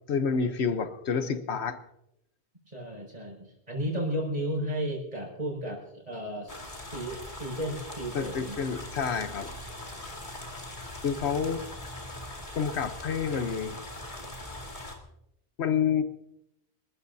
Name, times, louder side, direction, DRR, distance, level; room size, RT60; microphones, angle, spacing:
voice 1, 0.1-1.8 8.1-9.5 11.0-11.6 12.5-13.8 15.6-16.0, left 6 dB, 85° left, 9 dB, 1.2 m, -28 dB
voice 2, 2.7-8.6, equal, 40° right, -1 dB, 5.9 m, -34 dB
sound 1, 6.5-15.0, left 1 dB, 50° left, 2.6 m, -41 dB
27.5 x 14.0 x 2.7 m, 0.82 s
omnidirectional pair, 1.1 m